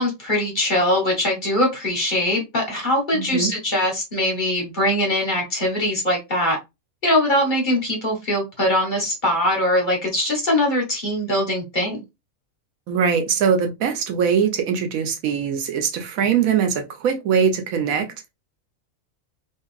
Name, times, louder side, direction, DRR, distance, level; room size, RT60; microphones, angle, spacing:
voice 1, 0.0-6.6 7.0-12.0, left 1 dB, 40° left, 1.1 m, -22 dB
voice 2, 3.1-3.5 12.9-18.3, right 7 dB, 80° right, 1.1 m, -22 dB
2.8 x 2.5 x 2.3 m
omnidirectional pair, 1.4 m